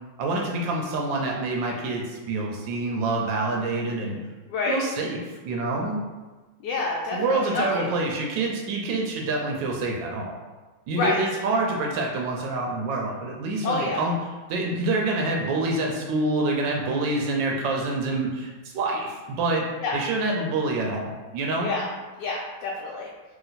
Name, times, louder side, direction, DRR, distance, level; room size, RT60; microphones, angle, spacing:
voice 1, 0.2-4.2 4.7-6.0 7.1-10.3 10.9-14.1 14.5-19.7 19.9-21.7, right 2 dB, 80° right, 0 dB, 1.3 m, -27 dB
voice 2, 4.5-4.8 6.6-7.9 11.0-11.2 13.6-14.0 19.8-20.0 21.6-21.9 22.2-23.1, left 3 dB, 75° left, -3 dB, 1.1 m, -27 dB
3.0 x 2.8 x 3.9 m, 1.2 s
omnidirectional pair, 2.0 m